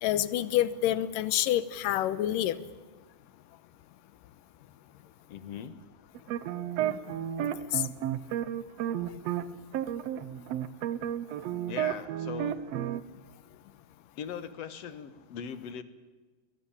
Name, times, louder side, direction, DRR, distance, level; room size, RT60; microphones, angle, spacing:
voice 1, 0.0-2.6 6.9-7.0 7.7-7.8, left 12 dB, 90° left, 17 dB, 2.6 m, -27 dB
voice 2, 5.3-5.8 11.7-12.6 14.2-15.8, left 8 dB, 60° left, 13 dB, 2.1 m, -40 dB
sound 1, 6.2-9.5 9.7-13.0, right 11 dB, 70° right, 1.6 m, -32 dB
22.5 x 19.0 x 8.7 m, 1.3 s
omnidirectional pair, 3.8 m